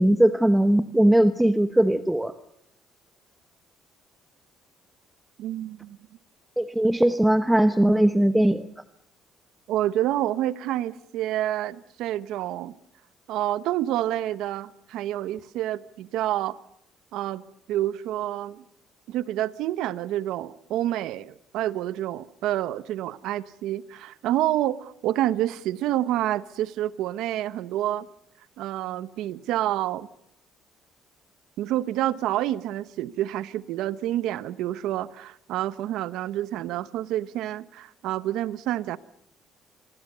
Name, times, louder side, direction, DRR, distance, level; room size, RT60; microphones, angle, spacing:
voice 1, 0.0-2.3 6.6-8.6, right 1 dB, 5° right, 1.0 m, -20 dB
voice 2, 5.4-6.0 9.7-12.7 13.3-16.6 17.1-17.4 17.7-18.6 19.1-28.1 28.6-30.1 31.6-39.0, right 13 dB, 80° right, 1.0 m, -28 dB
27.0 x 22.5 x 6.8 m
cardioid pair, 115°, 0 cm